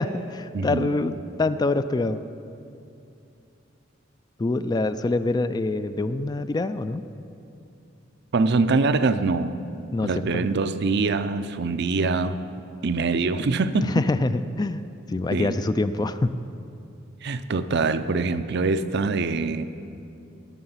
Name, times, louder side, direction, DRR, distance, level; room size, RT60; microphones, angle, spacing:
voice 1, 0.0-2.2 4.4-7.0 9.9-10.5 13.9-16.4, left 2 dB, 20° left, 12 dB, 0.3 m, -25 dB
voice 2, 0.5-0.9 8.3-9.6 10.0-12.4 12.8-13.9 15.3-15.6 17.2-19.6, right 3 dB, 60° right, 12 dB, 0.5 m, -24 dB
19.0 x 7.0 x 5.7 m, 2.6 s
head